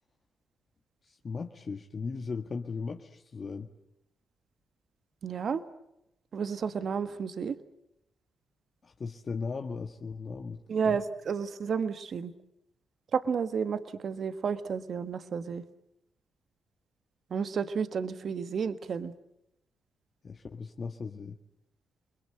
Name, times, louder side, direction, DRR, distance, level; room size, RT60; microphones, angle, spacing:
voice 1, 1.0-3.7 8.8-10.6 10.8-11.0 20.2-21.4, left 4 dB, 50° left, 4 dB, 1.6 m, -37 dB
voice 2, 5.2-5.6 6.3-7.6 10.7-12.3 13.1-15.6 17.3-19.1, right 6 dB, 60° right, 11 dB, 1.6 m, -31 dB
29.0 x 21.5 x 7.8 m, 0.80 s
supercardioid pair, 50°, 0 cm